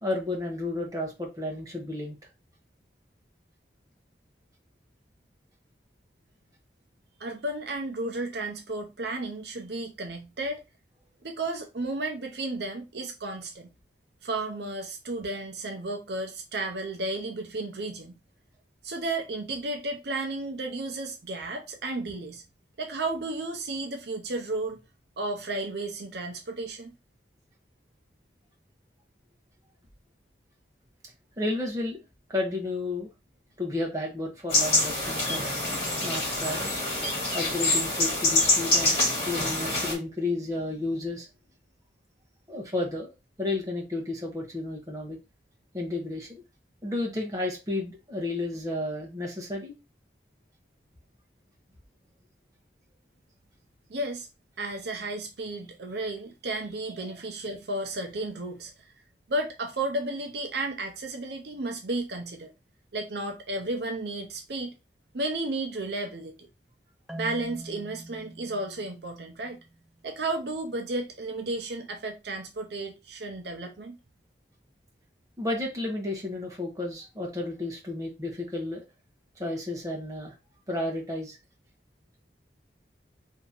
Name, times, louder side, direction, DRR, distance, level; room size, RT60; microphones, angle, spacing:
voice 1, 0.0-2.2 31.4-32.0 32.3-33.1 33.6-35.5 36.0-36.7 37.3-41.3 42.5-43.1 43.4-45.2 45.7-46.4 46.8-49.7 57.0-57.2 75.4-78.8 79.4-80.3 80.7-81.4, left 2 dB, 20° right, 0.9 m, -32 dB
voice 2, 7.2-10.6 11.2-13.7 14.2-18.2 18.8-22.4 22.8-24.8 25.2-26.9 53.9-54.3 54.6-58.7 59.3-62.5 62.9-64.7 65.1-66.3 67.1-69.6 70.0-74.0, right 2 dB, 70° right, 0.6 m, -33 dB
sound 1, 34.5-39.9, left 2 dB, 35° left, 1.9 m, -26 dB
Marimba xylophone, 67.1-70.1, right 1 dB, ahead, 0.4 m, -44 dB
2.9 x 2.7 x 3.6 m
head